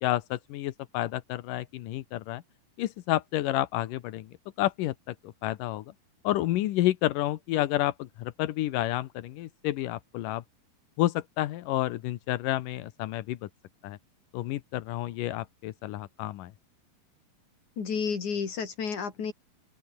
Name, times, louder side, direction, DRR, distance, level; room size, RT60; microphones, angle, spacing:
voice 1, 0.0-2.4 2.8-4.3 4.6-4.9 5.4-5.8 6.2-7.9 8.2-10.4 11.0-13.4 13.8-14.0 14.3-16.5, left 15 dB, 70° left, 2.4 m, -29 dB
voice 2, 17.8-19.3, left 6 dB, 55° left, 5.1 m, -31 dB
open air
omnidirectional pair, 4.3 m